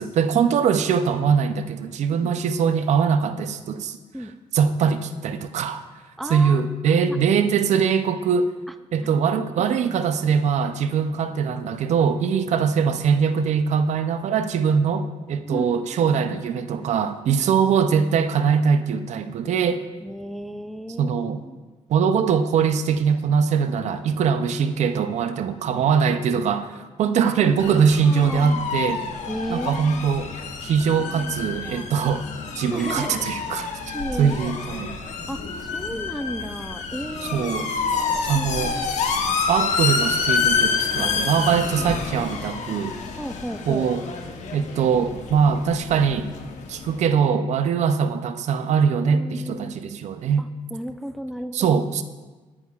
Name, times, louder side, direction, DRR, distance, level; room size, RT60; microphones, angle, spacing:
voice 1, 0.0-4.0 4.5-5.8 6.3-8.5 8.9-19.8 21.0-21.4 21.9-29.1 29.5-30.3 30.6-32.3 32.6-35.0 37.3-37.7 38.3-38.7 39.5-43.0 43.7-44.0 44.5-46.3 46.7-50.4 51.5-52.0, right 6 dB, 65° right, 10 dB, 0.5 m, -22 dB
voice 2, 6.2-7.2 9.0-9.1 9.5-9.7 15.4-15.8 20.0-21.2 21.4-21.6 27.2-27.6 28.0-28.7 29.3-30.1 31.0-31.9 32.7-33.2 33.6-34.5 35.3-38.9 41.8-41.9 43.2-43.9 49.0-49.8 50.4-51.7, equal, ahead, 9 dB, 0.3 m, -34 dB
sound 1, 27.6-47.1, left 5 dB, 75° left, 0.9 m, -28 dB
9.9 x 9.6 x 2.4 m, 1.3 s
cardioid pair, 135°, 12 cm